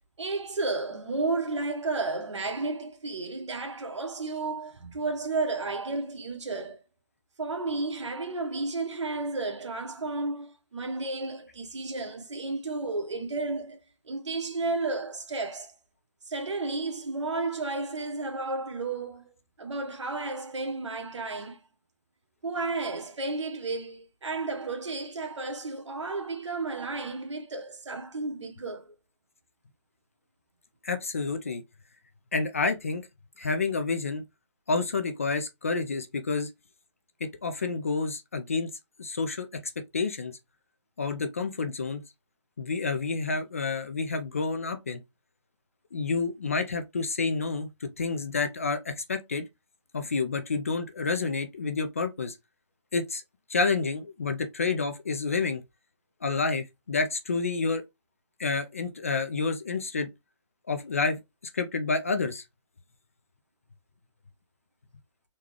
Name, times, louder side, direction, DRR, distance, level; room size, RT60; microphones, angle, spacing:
voice 1, 0.2-6.8 7.4-13.8 14.0-15.7 16.3-21.6 22.4-28.9, right 3 dB, 70° right, 1.2 m, -32 dB
voice 2, 30.8-31.6 32.3-33.1 33.4-34.2 34.7-36.5 37.2-38.7 39.0-39.5 39.9-40.3 41.0-42.0 42.6-45.0 45.9-49.4 49.9-52.4 52.9-53.2 53.5-55.6 56.2-57.8 58.4-60.1 60.7-61.2 61.5-62.4, left 4 dB, 30° left, 0.3 m, -29 dB
3.8 x 2.2 x 3.1 m
hypercardioid pair, 165°, 16 cm